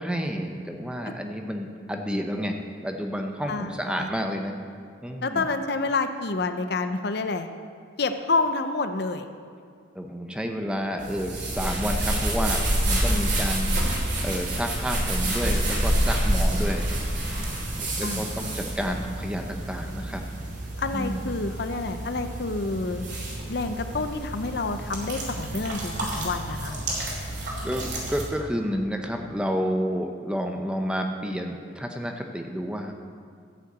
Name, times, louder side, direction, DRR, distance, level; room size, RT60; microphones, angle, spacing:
voice 1, 0.0-4.6 5.0-5.5 9.9-17.0 17.7-20.2 20.9-21.2 27.6-32.9, equal, 5° right, 3 dB, 0.7 m, -30 dB
voice 2, 3.5-4.1 5.2-7.5 8.0-9.3 18.0-18.5 20.8-23.1 23.5-26.8, left 3 dB, 55° left, 8 dB, 0.6 m, -28 dB
sound 1, 11.0-28.2, right 1 dB, 60° right, 3.2 m, -28 dB
14.0 x 5.7 x 8.0 m, 2.1 s
head